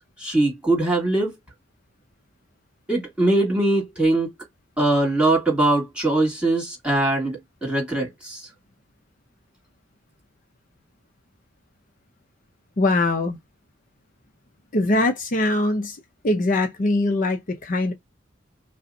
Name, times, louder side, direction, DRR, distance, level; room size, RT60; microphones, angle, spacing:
voice 1, 0.2-1.3 2.9-4.3 4.8-8.5, right 2 dB, 5° right, 2.3 m, -21 dB
voice 2, 12.8-13.4 14.7-16.0 16.2-17.9, left 2 dB, 40° left, 0.5 m, -22 dB
5.4 x 2.0 x 2.6 m
head